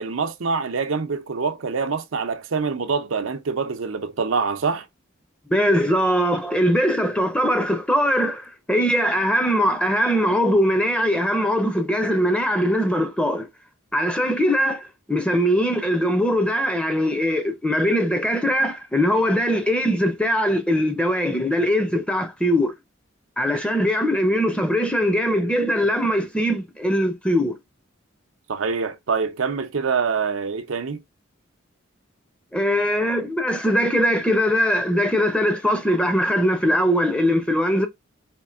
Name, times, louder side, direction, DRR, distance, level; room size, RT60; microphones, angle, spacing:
voice 1, 0.0-4.8 28.5-31.0, right 5 dB, 85° right, 0.6 m, -25 dB
voice 2, 5.5-13.5 13.9-22.7 23.4-27.6 32.5-37.9, equal, 5° left, 0.6 m, -21 dB
4.3 x 2.6 x 2.4 m
head